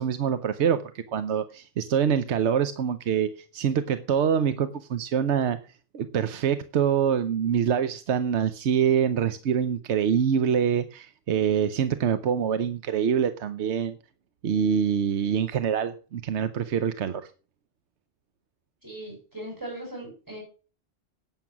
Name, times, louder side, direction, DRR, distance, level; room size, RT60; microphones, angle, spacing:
voice 1, 0.0-5.6 5.9-14.0 14.4-17.3, right 8 dB, 80° right, 11 dB, 1.1 m, -25 dB
voice 2, 18.8-20.4, right 1 dB, 15° right, -1 dB, 6.6 m, -38 dB
11.5 x 9.2 x 6.0 m, 0.37 s
omnidirectional pair, 1.1 m